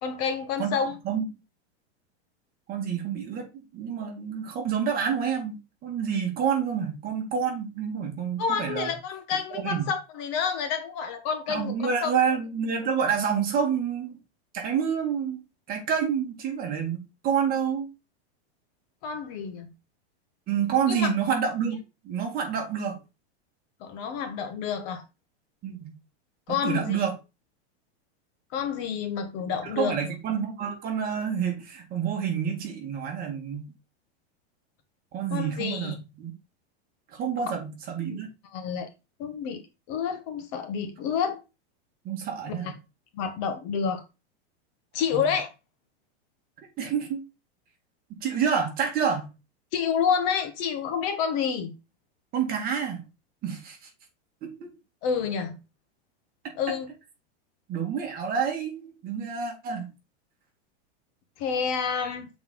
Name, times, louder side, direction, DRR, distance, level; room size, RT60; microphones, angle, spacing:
voice 1, 0.0-1.0 8.4-12.1 19.0-19.7 20.9-21.1 23.8-25.0 26.5-27.0 28.5-29.9 35.3-36.0 38.1-38.2 38.5-38.9 39.2-39.6 39.9-41.4 42.5-42.7 43.1-44.0 44.9-45.5 49.7-51.8 55.0-55.6 56.6-56.9 61.4-62.3, left 6 dB, 40° left, 1.3 m, -29 dB
voice 2, 2.7-3.5 3.7-8.9 9.5-9.8 11.5-14.2 14.5-15.4 15.7-17.9 20.5-21.8 22.0-23.0 25.6-25.9 26.5-27.2 29.6-33.7 35.1-36.3 37.1-38.3 42.1-42.8 45.1-45.2 46.8-47.2 48.2-49.3 52.3-53.0 53.4-53.8 54.4-54.7 57.7-59.9, right 7 dB, 25° right, 1.8 m, -28 dB
7.7 x 4.3 x 3.8 m
supercardioid pair, 160°, 33 cm